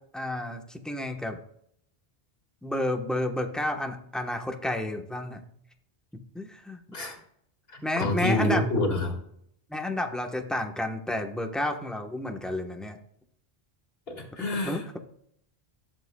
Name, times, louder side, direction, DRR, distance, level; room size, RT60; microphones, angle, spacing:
voice 1, 0.1-1.4 2.6-5.4 6.3-6.8 7.8-8.7 9.7-13.0 14.6-15.0, left 1 dB, ahead, 3 dB, 0.9 m, -31 dB
voice 2, 7.7-9.2 14.1-14.8, left 1 dB, 70° left, 2 dB, 2.2 m, -28 dB
19.5 x 7.5 x 2.2 m, 0.70 s
omnidirectional pair, 1.0 m